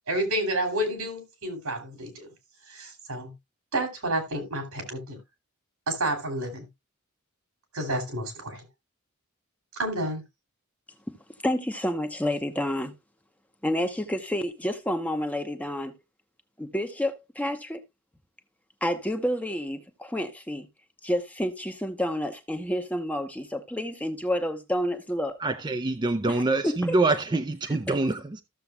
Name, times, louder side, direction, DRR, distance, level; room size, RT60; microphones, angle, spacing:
voice 1, 0.1-2.3 2.7-3.3 3.7-5.2 5.9-6.6 7.7-8.6 9.8-10.2, right 1 dB, 80° right, 2.9 m, -30 dB
voice 2, 11.4-12.9 13.6-15.9 16.6-17.8 18.8-20.7 21.0-25.4 26.6-27.0, equal, 5° left, 0.8 m, -29 dB
voice 3, 25.4-28.4, right 2 dB, 20° right, 0.5 m, -25 dB
14.5 x 6.9 x 2.2 m
head